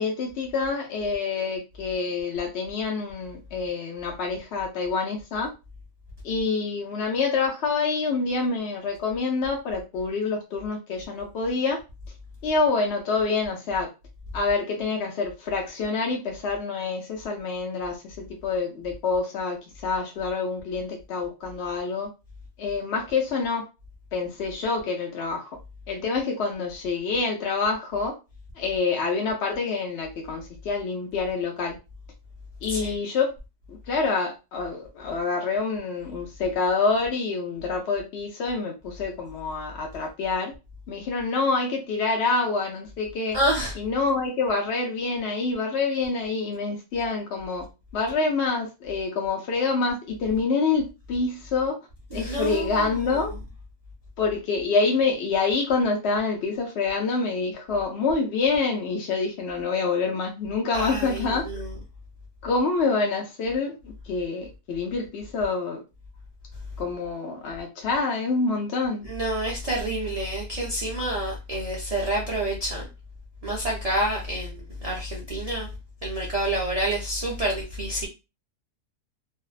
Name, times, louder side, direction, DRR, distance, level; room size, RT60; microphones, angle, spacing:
voice 1, 0.0-5.5 6.2-11.8 12.4-13.9 14.3-22.1 22.6-23.7 24.1-25.5 25.9-28.1 28.6-31.8 32.6-33.3 33.7-40.5 40.9-43.4 43.8-47.7 47.9-51.8 52.1-53.3 54.2-61.6 62.4-65.8 66.8-69.0, left 4 dB, 65° left, 0.7 m, -27 dB
voice 2, 43.3-43.7 52.1-53.2 60.7-61.7 69.0-72.9 73.4-75.7 76.0-78.1, right 1 dB, 65° right, 0.3 m, -28 dB
2.5 x 2.1 x 2.3 m
omnidirectional pair, 1.5 m